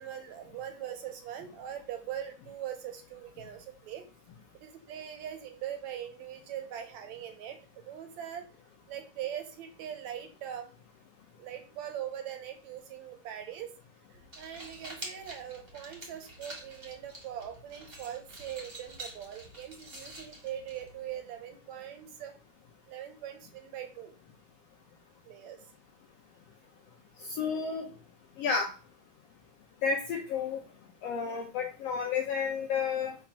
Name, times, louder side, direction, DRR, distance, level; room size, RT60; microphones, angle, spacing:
voice 1, 0.0-4.1 4.5-8.5 8.9-10.7 11.4-13.7 14.1-22.4 22.9-24.1 25.3-25.6, right 10 dB, 70° right, 7 dB, 2.0 m, -41 dB
sound 1, 14.1-21.2, right 1 dB, 25° right, 1.5 m, -47 dB
voice 2, 27.3-27.8 28.4-28.7 29.8-30.6 31.0-33.2, left 5 dB, 75° left, 2 dB, 1.5 m, -31 dB
5.9 x 3.6 x 5.9 m, 0.36 s
omnidirectional pair, 3.7 m